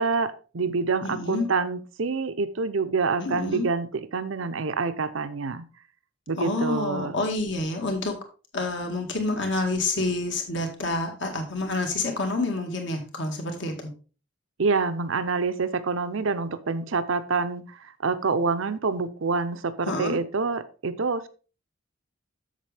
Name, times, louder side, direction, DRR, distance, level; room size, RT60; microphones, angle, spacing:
voice 1, 0.0-5.7 6.3-7.2 14.6-21.3, right 4 dB, 70° right, 11 dB, 0.6 m, -27 dB
voice 2, 1.0-1.5 3.2-3.7 6.4-8.2 8.5-13.9 19.9-20.2, left 2 dB, 55° left, 3 dB, 1.8 m, -28 dB
7.4 x 7.2 x 3.4 m, 0.35 s
head